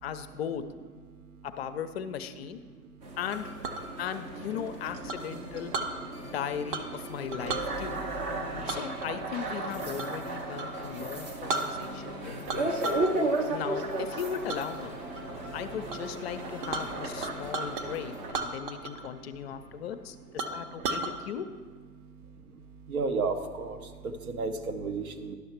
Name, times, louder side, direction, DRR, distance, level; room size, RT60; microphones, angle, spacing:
voice 1, 0.0-0.6 1.4-2.6 3.2-3.5 4.0-5.8 6.2-8.0 8.7-12.4 13.5-15.0 15.5-21.5, left 8 dB, 45° left, 10 dB, 0.5 m, -37 dB
sound 1, 3.0-18.3, right 2 dB, 20° right, 0.5 m, -35 dB
Chink clink, 3.3-3.8 5.1-5.9 6.7-7.0 7.3-7.7 8.7-10.2 10.5-10.7 11.2-11.3 11.5-12.1 12.5-13.1 13.5-13.8 14.5-14.6 15.1-15.5 15.9-16.0 16.2-17.9 18.3-19.1 19.3-19.4 19.9-20.0 20.4-21.1, right 3 dB, 40° right, 0.8 m, -34 dB
sound 2, 3.4-20.7, right 2 dB, 90° right, 2.7 m, -47 dB
voice 2, 22.9-23.8 24.3-25.3, right 4 dB, 70° right, 6 dB, 1.0 m, -31 dB
11.0 x 6.3 x 4.4 m, 1.5 s
figure-of-eight pair, 115°, 45 cm